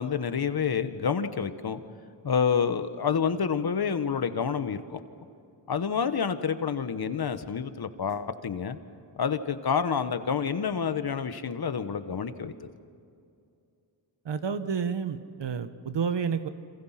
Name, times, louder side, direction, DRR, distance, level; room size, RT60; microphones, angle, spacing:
voice 1, 0.0-1.8 2.2-5.0 5.7-8.8 9.2-12.5, left 6 dB, 50° left, 10 dB, 1.2 m, -28 dB
voice 2, 14.2-16.5, right 6 dB, 60° right, 10 dB, 1.4 m, -30 dB
28.5 x 27.0 x 5.8 m, 2.5 s
wide cardioid pair, 120°, 49 cm